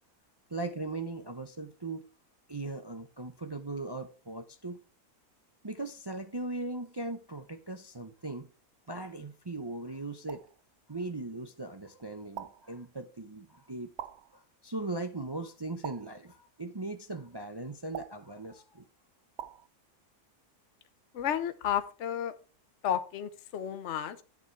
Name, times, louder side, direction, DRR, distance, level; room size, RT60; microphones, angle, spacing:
voice 1, 0.5-2.0 2.5-4.8 5.6-8.5 8.9-10.5 10.9-13.9 14.3-18.9, right 2 dB, 40° right, 0.3 m, -39 dB
sound 1, 10.3-10.6 12.4-12.7 14.0-14.4 15.8-16.3 17.9-18.3 19.4-19.7, right 10 dB, 60° right, 0.8 m, -43 dB
voice 2, 21.1-22.3 22.8-24.2, left 9 dB, 55° left, 1.1 m, -32 dB
10.5 x 7.0 x 4.5 m
omnidirectional pair, 1.6 m